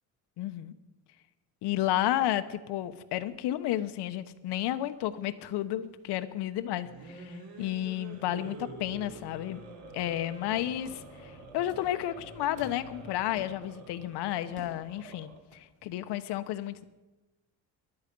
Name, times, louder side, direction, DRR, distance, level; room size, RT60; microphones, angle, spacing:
voice 1, 0.4-0.7 1.6-9.6 9.9-16.8, left 13 dB, 85° left, 12 dB, 1.0 m, -32 dB
sound 1, 6.8-15.5, right 2 dB, 65° right, 3.2 m, -47 dB
sound 2, 10.8-11.2 11.7-12.0 12.3-13.0 13.4-14.0 14.6-15.0, right 2 dB, 40° right, 4.2 m, -52 dB
19.5 x 12.0 x 5.3 m, 1.1 s
cardioid pair, 180°, 39 cm